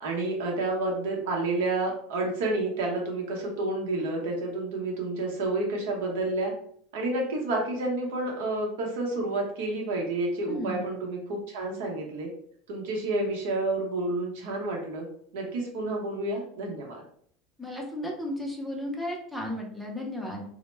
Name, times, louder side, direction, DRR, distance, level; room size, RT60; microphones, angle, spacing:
voice 1, 0.0-6.5 6.9-12.3 12.7-15.1 15.3-17.0, right 2 dB, 80° right, 0 dB, 0.8 m, -30 dB
voice 2, 10.5-10.9 17.6-20.4, left 1 dB, 5° left, 0 dB, 0.5 m, -34 dB
2.1 x 2.0 x 3.2 m, 0.62 s
supercardioid pair, 150°, 0 cm